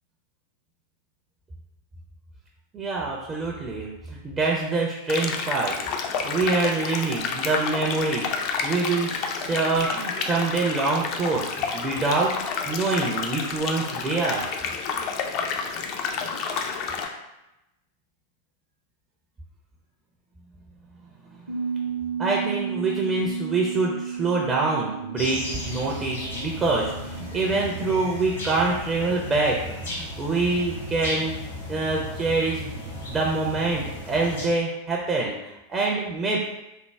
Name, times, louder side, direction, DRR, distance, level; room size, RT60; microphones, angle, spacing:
voice 1, 2.7-5.8 6.2-12.3 12.6-14.4 22.2-31.4 31.7-36.4, right 3 dB, 20° right, -2 dB, 0.4 m, -25 dB
sound 1, 5.1-17.1, left 5 dB, 40° left, 0.3 m, -30 dB
Bass guitar, 21.5-27.7, right 7 dB, 65° right, 0.6 m, -33 dB
sound 2, 25.2-34.5, left 1 dB, 70° left, 1.1 m, -35 dB
3.4 x 2.0 x 3.2 m, 0.93 s
figure-of-eight pair, 90°, 0 cm